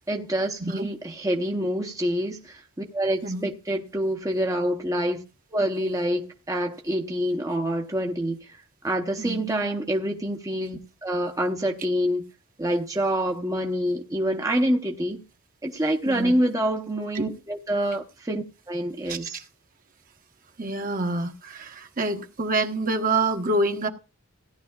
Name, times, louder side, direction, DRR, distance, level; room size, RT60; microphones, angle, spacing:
voice 1, 0.1-2.6 2.9-5.2 5.5-12.2 12.6-15.2 15.6-19.4, right 1 dB, 15° right, 0.9 m, -26 dB
voice 2, 9.2-9.5 16.0-16.3 17.2-17.3 19.1-19.3 20.6-23.9, right 2 dB, 40° right, 1.1 m, -27 dB
17.0 x 10.5 x 2.4 m
head